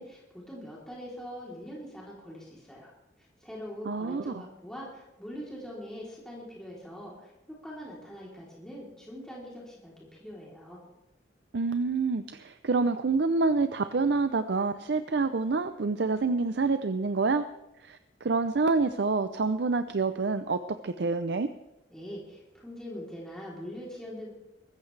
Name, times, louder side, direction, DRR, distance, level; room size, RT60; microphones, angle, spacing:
voice 1, 0.0-2.9 3.4-7.3 7.6-10.8 21.9-24.3, equal, 5° left, -5 dB, 3.3 m, -43 dB
voice 2, 3.8-4.4 11.5-17.4 17.8-21.5, right 4 dB, 65° right, 10 dB, 0.6 m, -27 dB
22.5 x 14.0 x 3.3 m, 0.95 s
head